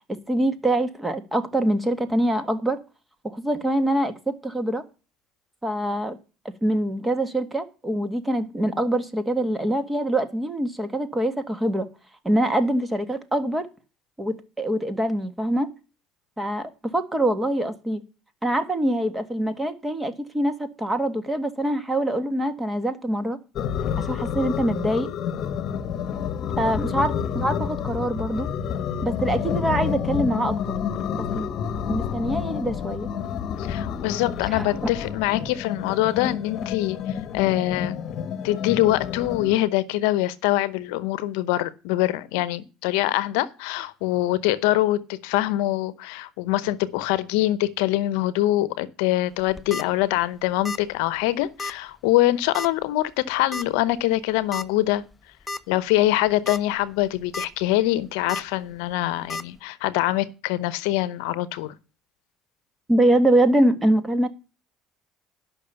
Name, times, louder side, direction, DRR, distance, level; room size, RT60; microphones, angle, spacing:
voice 1, 0.1-2.8 3.2-4.8 5.6-6.2 6.6-11.9 12.2-13.7 14.2-15.7 16.4-18.0 18.4-23.4 24.0-25.1 26.6-28.5 29.0-30.8 31.1-31.5 31.9-33.1 34.5-34.8 62.9-64.3, right 1 dB, 15° right, 1.7 m, -24 dB
sound 1, 23.6-39.6, left 8 dB, 55° left, 1.1 m, -29 dB
voice 2, 33.7-37.0 37.3-38.0 38.4-55.0 55.7-61.7, left 15 dB, 85° left, 0.7 m, -24 dB
sound 2, 49.4-49.8 50.6-50.9 51.2-51.3 51.6-51.7 52.5-52.8 53.5-53.6 54.5-54.7 55.1-55.2 55.5-55.6 56.3-56.6 57.0-57.5 58.3-58.4 59.3-59.4, left 2 dB, 15° left, 0.7 m, -31 dB
11.5 x 5.9 x 6.9 m
supercardioid pair, 85°, 0 cm